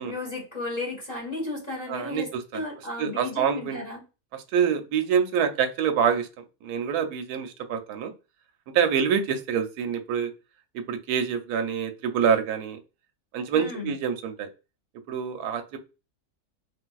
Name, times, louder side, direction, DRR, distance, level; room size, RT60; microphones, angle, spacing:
voice 1, 0.0-4.0 13.5-13.9, left 2 dB, 30° left, -2 dB, 1.3 m, -34 dB
voice 2, 1.9-2.4 3.0-3.8 4.3-8.1 8.7-10.3 10.7-12.8 13.3-14.5 15.1-15.8, right 7 dB, 90° right, 6 dB, 1.1 m, -26 dB
3.4 x 2.6 x 2.3 m, 0.29 s
omnidirectional pair, 1.6 m